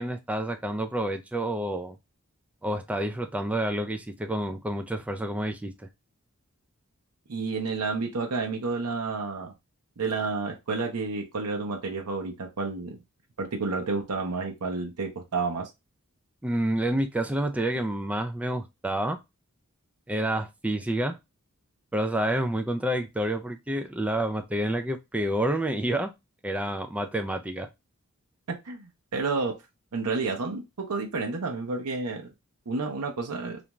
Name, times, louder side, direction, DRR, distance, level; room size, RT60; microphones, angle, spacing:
voice 1, 0.0-2.0 2.6-5.7 16.4-19.2 20.1-21.2 21.9-26.1 26.4-27.7, right 1 dB, 5° right, 0.3 m, -28 dB
voice 2, 7.3-9.5 10.0-13.0 13.4-15.7 28.5-29.6 29.9-32.3 32.7-33.6, right 4 dB, 80° right, 0.6 m, -30 dB
2.5 x 2.2 x 2.9 m
head